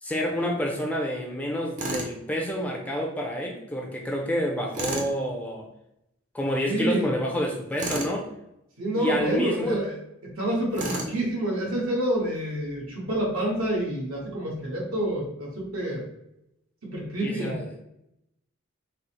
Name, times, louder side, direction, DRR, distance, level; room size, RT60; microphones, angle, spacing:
voice 1, 0.0-5.6 6.3-8.3 8.9-9.8 17.2-17.8, equal, 5° left, 0 dB, 0.4 m, -28 dB
Tools, 1.8-2.1 4.7-5.1 7.8-8.1 10.7-11.2, right 2 dB, 35° right, 0.6 m, -31 dB
voice 2, 6.7-7.1 8.8-9.9 10.4-16.1 16.8-17.6, right 1 dB, 80° right, -3 dB, 1.3 m, -28 dB
3.9 x 2.0 x 4.2 m, 0.83 s
head